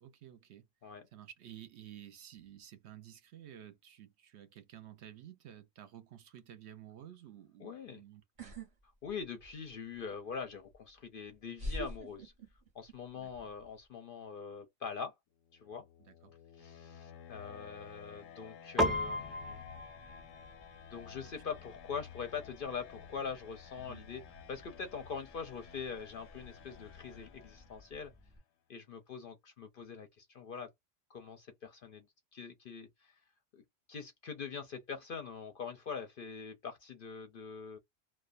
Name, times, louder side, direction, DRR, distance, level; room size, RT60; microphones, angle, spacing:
voice 1, 0.0-0.7 1.1-8.6 13.1-13.5 16.1-16.3 23.8-24.0, right 11 dB, 65° right, 0.8 m, -53 dB
voice 2, 7.6-8.0 9.0-12.3 12.7-15.1 15.5-15.8 16.5-19.6 20.9-28.1 28.7-30.7 31.1-32.1 32.3-33.2 33.5-33.6 33.9-37.8, left 6 dB, 55° left, 0.6 m, -43 dB
sound 1, 8.4-8.7 9.0-9.7 10.7-10.8 11.6-12.9 13.2-13.7, equal, 35° right, 0.8 m, -41 dB
sound 2, 15.4-28.2, left 8 dB, 85° left, 0.9 m, -53 dB
Piano, 18.8-28.4, left 1 dB, ahead, 0.4 m, -41 dB
2.4 x 2.1 x 2.4 m
omnidirectional pair, 1.3 m